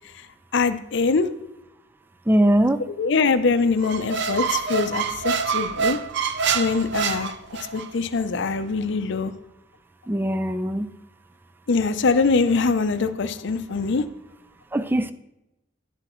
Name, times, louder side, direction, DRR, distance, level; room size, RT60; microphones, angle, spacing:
voice 1, 0.5-1.3 3.0-6.0 6.5-7.4 7.7-9.3 11.7-14.0, left 4 dB, 65° left, 11 dB, 0.6 m, -23 dB
voice 2, 2.3-2.8 10.1-10.9 14.7-15.1, right 1 dB, 10° right, 13 dB, 0.4 m, -21 dB
Squeak, 3.8-7.9, right 6 dB, 65° right, 0.6 m, -26 dB
11.5 x 7.7 x 3.1 m, 0.88 s
head